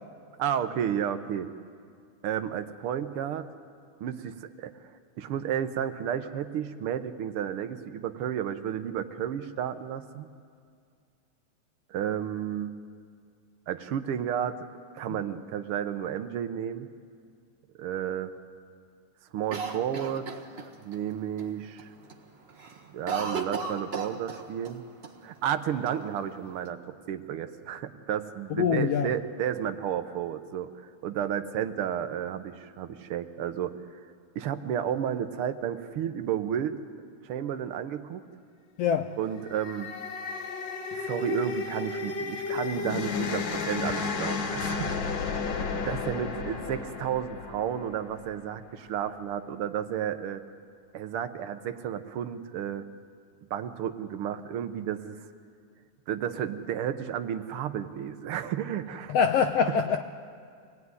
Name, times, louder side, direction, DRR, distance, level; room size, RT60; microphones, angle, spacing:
voice 1, 0.4-1.5 2.2-3.5 4.0-4.7 5.2-10.3 11.9-12.7 13.7-14.6 14.9-16.9 17.8-18.3 19.3-20.3 20.8-21.9 22.9-24.8 25.2-33.7 34.3-36.8 37.2-38.2 39.2-39.9 40.9-45.2 45.7-50.4 50.9-52.9 53.5-55.2 56.1-59.1 59.7-59.8, right 9 dB, 70° right, 9 dB, 1.4 m, -32 dB
Cough, 19.5-21.0 21.4-21.5 21.8-22.2 22.5-24.8 25.0-25.1 25.9-26.7, right 5 dB, 50° right, 0.7 m, -35 dB
voice 2, 28.6-29.1 38.8-39.1 59.1-60.1, left 7 dB, 75° left, 7 dB, 1.5 m, -24 dB
sound 1, 39.3-48.6, left 5 dB, 50° left, 1.5 m, -33 dB
25.0 x 18.0 x 9.6 m, 2.2 s
omnidirectional pair, 3.5 m